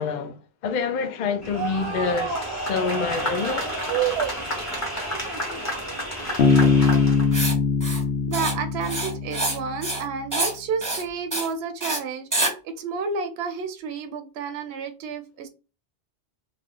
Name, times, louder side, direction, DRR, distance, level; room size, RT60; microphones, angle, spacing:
voice 1, 0.0-3.7, left 5 dB, 55° left, 0.5 m, -27 dB
sound 1, 1.4-7.3, right 1 dB, 15° left, 0.9 m, -30 dB
voice 2, 3.9-4.4 8.3-15.5, right 6 dB, 80° right, 0.8 m, -30 dB
Bass guitar, 6.4-9.9, left 5 dB, 75° left, 0.9 m, -21 dB
Writing, 7.3-7.5 7.8-8.0 8.3-8.5 8.8-9.6 9.8-10.0 10.3-10.5 10.8-11.0 11.3-11.5 11.8-12.0 12.3-12.5, right 2 dB, 20° right, 0.7 m, -26 dB
2.4 x 2.3 x 3.6 m
omnidirectional pair, 1.1 m